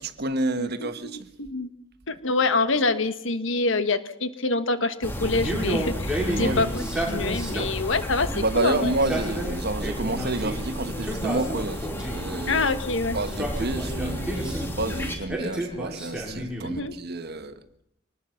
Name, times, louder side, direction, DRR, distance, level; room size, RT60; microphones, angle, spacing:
voice 1, 0.0-1.1 6.2-6.6 7.5-7.7 8.3-12.7 13.1-17.5, right 2 dB, 55° right, 1.5 m, -29 dB
voice 2, 0.6-1.7 2.1-8.9 12.5-13.2 16.6-16.9, left 3 dB, 70° left, 1.5 m, -26 dB
sound 1, 5.0-15.2, equal, 10° left, 3.2 m, -32 dB
Male speech man speaking, 5.3-7.9 8.8-10.6 11.0-12.3 13.2-14.7 15.3-16.8, right 1 dB, 5° right, 6.2 m, -31 dB
24.5 x 19.5 x 5.9 m
head